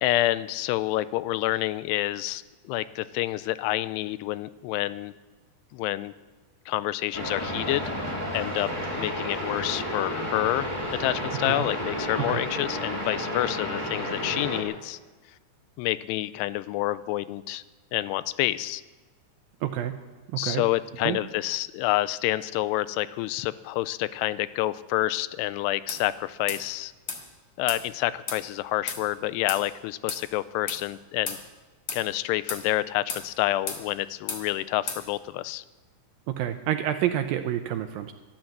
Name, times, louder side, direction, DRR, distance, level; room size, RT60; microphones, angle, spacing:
voice 1, 0.0-5.1 5.7-6.1 6.7-7.9 8.3-8.7 9.0-10.7 11.0-15.0 15.8-17.6 17.9-18.8 20.4-26.9 27.6-31.4 31.9-35.6, left 16 dB, 90° left, 15 dB, 2.7 m, -28 dB
sound 1, 7.1-14.6, equal, 5° left, 1.4 m, -31 dB
voice 2, 19.6-19.9 20.4-20.6 21.0-21.2 36.4-38.1, right 11 dB, 80° right, 8 dB, 2.1 m, -28 dB
sound 2, 25.9-26.0 26.5-26.6 27.1-27.2 27.7-27.8 28.3-28.4 28.9-29.0 29.5-29.6 30.1-30.2 30.7-30.8 31.3-31.4 31.9-32.0 32.5-32.6 33.1-33.3 33.7-33.8 34.3-34.4 34.9-35.0, left 5 dB, 50° left, 2.1 m, -33 dB
13.0 x 12.0 x 7.7 m, 1.3 s
omnidirectional pair, 4.7 m